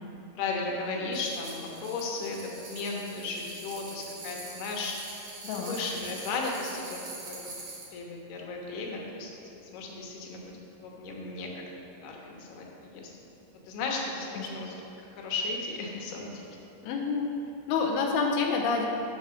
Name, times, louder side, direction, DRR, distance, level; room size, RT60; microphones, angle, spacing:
voice 1, 0.3-4.9 5.5-7.0 7.3-7.5 7.9-9.3 9.6-10.5 10.8-11.5 12.0-13.1 13.7-14.7 15.2-16.6, left 3 dB, 70° left, -1 dB, 2.8 m, -35 dB
sound 1, 1.1-7.9, right 3 dB, 50° right, 2.4 m, -44 dB
voice 2, 5.4-5.8 14.4-14.5 16.8-17.3 17.7-18.9, left 5 dB, 85° left, 0 dB, 2.3 m, -28 dB
12.0 x 4.9 x 6.3 m, 2.9 s
omnidirectional pair, 5.5 m